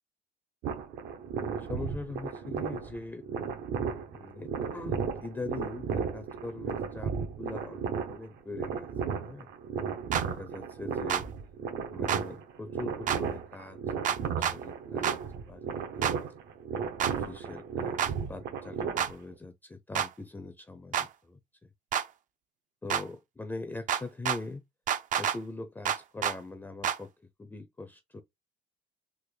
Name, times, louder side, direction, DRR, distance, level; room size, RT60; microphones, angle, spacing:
sound 1, 0.6-19.3, right 6 dB, 75° right, 0.8 m, -35 dB
voice 1, 1.3-3.3 4.1-9.5 10.2-11.3 11.9-13.8 14.1-15.2 15.5-16.2 17.0-21.4 22.8-24.6 25.1-27.1 27.4-28.2, left 3 dB, 10° left, 0.5 m, -42 dB
sound 2, 10.1-10.3 11.1-11.2 12.1-12.2 13.1-13.2 14.1-14.6 15.0-15.2 16.0-16.2 17.0-17.1 18.0-18.1 19.0-19.1 20.0-20.1 20.9-21.1 21.9-22.1 22.9-23.0 23.9-24.4 24.9-25.4 25.9-26.4 26.8-27.0, right 9 dB, 50° right, 0.5 m, -28 dB
3.7 x 2.1 x 3.1 m
cardioid pair, 110°, 17 cm